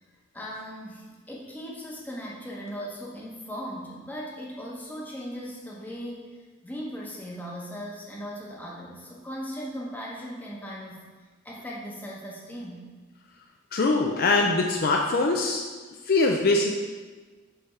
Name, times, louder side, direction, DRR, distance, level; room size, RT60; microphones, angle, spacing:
voice 1, 0.3-6.4 6.6-11.0 11.4-12.9, equal, 10° left, -4 dB, 0.9 m, -38 dB
voice 2, 13.7-15.6 16.0-16.8, left 3 dB, 45° left, 1 dB, 0.4 m, -22 dB
5.4 x 3.4 x 5.6 m, 1.4 s
head